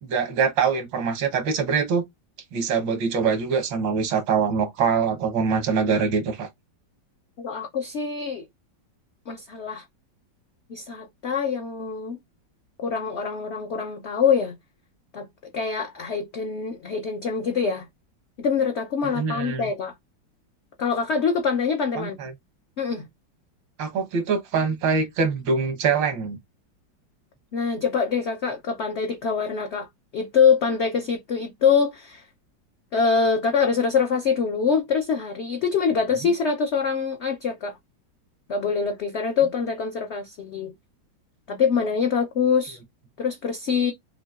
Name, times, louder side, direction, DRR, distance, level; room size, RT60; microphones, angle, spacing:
voice 1, 0.0-2.0 2.5-6.5 19.0-19.7 22.0-22.3 23.8-26.4, right 5 dB, 90° right, 1.8 m, -24 dB
voice 2, 7.4-8.5 9.3-9.9 10.7-12.2 12.8-14.6 15.1-17.9 18.4-19.9 20.8-22.2 22.8-23.1 27.5-32.3 32.9-37.8 38.5-40.7 41.5-42.8 43.2-43.9, left 6 dB, 60° left, 0.7 m, -24 dB
5.8 x 2.7 x 2.4 m
omnidirectional pair, 2.0 m